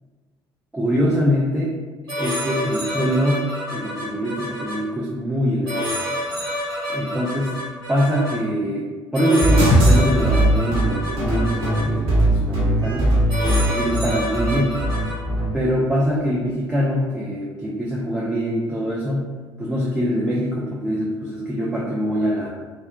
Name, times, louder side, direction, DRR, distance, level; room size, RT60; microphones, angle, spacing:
voice 1, 0.7-1.7 2.2-3.5 3.7-5.9 6.9-7.6 7.9-13.2 13.6-14.8 15.5-19.3 19.6-22.5, equal, 10° right, -5 dB, 0.4 m, -23 dB
sound 1, 2.1-4.7 5.7-8.3 9.1-11.8 12.8-13.0 13.3-15.2, equal, 80° right, 0.9 m, -28 dB
sound 2, 9.4-15.5, right 1 dB, 50° right, 1.0 m, -19 dB
2.7 x 2.1 x 2.3 m, 1.3 s
figure-of-eight pair, 55°, 12 cm